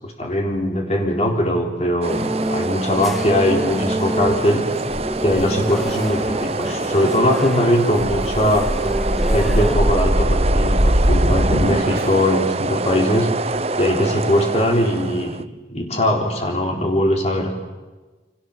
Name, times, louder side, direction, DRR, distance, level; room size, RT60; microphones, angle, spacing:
voice 1, 0.0-4.6 5.2-8.7 9.3-13.3 13.8-15.4 15.7-17.5, equal, 40° left, 1 dB, 3.9 m, -20 dB
sound 1, 2.0-15.4, right 3 dB, 35° right, 1.0 m, -26 dB
sound 2, 2.1-9.8, equal, ahead, 1.7 m, -28 dB
sound 3, 8.1-12.3, equal, 65° right, 3.0 m, -20 dB
29.5 x 26.0 x 7.4 m, 1.2 s
head